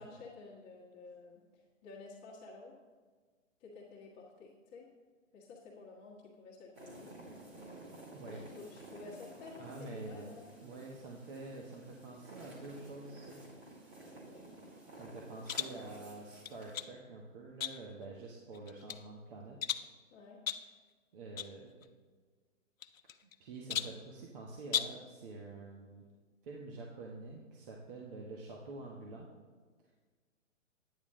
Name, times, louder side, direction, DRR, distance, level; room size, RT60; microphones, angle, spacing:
voice 1, 0.0-1.4 1.8-2.8 3.6-4.9 5.3-7.1 8.2-10.5 14.3-14.5 20.1-20.4, left 3 dB, 25° left, -6 dB, 1.6 m, -51 dB
sound 1, 6.7-16.9, right 2 dB, 25° right, 2.4 m, -53 dB
voice 2, 8.1-8.4 9.6-13.4 14.9-19.6 21.1-21.9 23.4-26.0 26.4-29.3 29.8-29.9, right 3 dB, 40° right, -1 dB, 1.3 m, -47 dB
sound 2, 15.5-15.8 16.5-17.0 17.6-18.0 18.5-19.0 19.6-20.0 20.5-20.7 21.4-21.5 21.8-21.9 22.8-23.3 23.7-24.0 24.6-25.1, left 9 dB, 85° left, 0.6 m, -37 dB
10.0 x 9.5 x 3.8 m, 1.5 s
hypercardioid pair, 140°, 40 cm